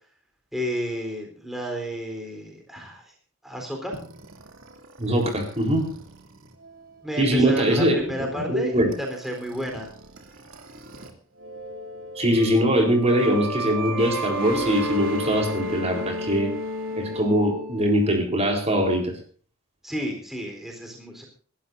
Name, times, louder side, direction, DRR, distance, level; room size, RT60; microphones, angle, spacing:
voice 1, 0.5-3.0 3.4-4.0 7.0-9.9 19.8-21.3, equal, ahead, 1 dB, 3.9 m, -31 dB
sound 1, 3.9-11.1 11.4-17.8, right 1 dB, 75° right, 2.7 m, -34 dB
voice 2, 5.0-5.8 7.2-8.0 8.5-8.9 12.2-16.5 17.0-19.1, equal, 30° right, 2 dB, 4.0 m, -22 dB
27.0 x 13.0 x 2.7 m, 0.41 s
head